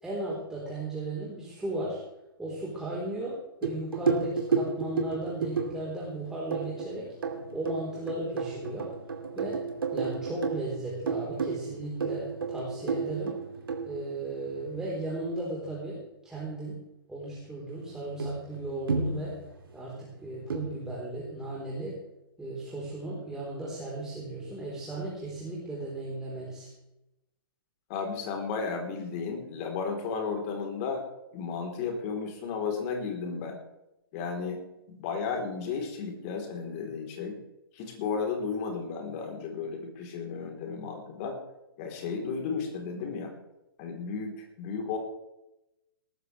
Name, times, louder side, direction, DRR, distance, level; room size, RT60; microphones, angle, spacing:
voice 1, 0.0-2.0 2.4-7.1 7.5-8.9 9.4-9.6 9.9-13.4 13.9-16.8 17.1-19.4 19.7-22.0 22.4-26.7, right 2 dB, 5° right, -6 dB, 4.0 m, -36 dB
sound 1, 3.6-14.8 17.7-17.8 18.2-19.9 20.5-20.9, right 5 dB, 70° right, 2.4 m, -32 dB
voice 2, 27.9-31.0 31.3-33.6 34.1-34.6 34.9-37.4 37.7-41.4 41.8-43.3 43.8-45.0, left 5 dB, 35° left, 2 dB, 3.8 m, -33 dB
19.0 x 14.0 x 3.4 m, 0.92 s
figure-of-eight pair, 120°, 13 cm